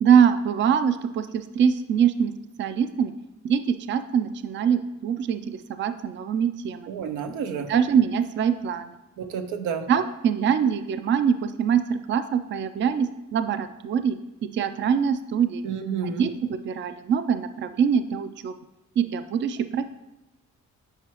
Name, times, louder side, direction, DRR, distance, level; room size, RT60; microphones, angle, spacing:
voice 1, 0.0-2.3 2.6-3.1 3.4-6.9 7.7-8.9 9.9-15.6 16.0-18.5 19.0-19.9, right 7 dB, 40° right, 11 dB, 0.4 m, -23 dB
voice 2, 6.9-7.7 9.2-9.9 15.6-16.2, right 7 dB, 85° right, 7 dB, 0.7 m, -30 dB
8.9 x 4.7 x 3.0 m, 0.96 s
cardioid pair, 90°, 30 cm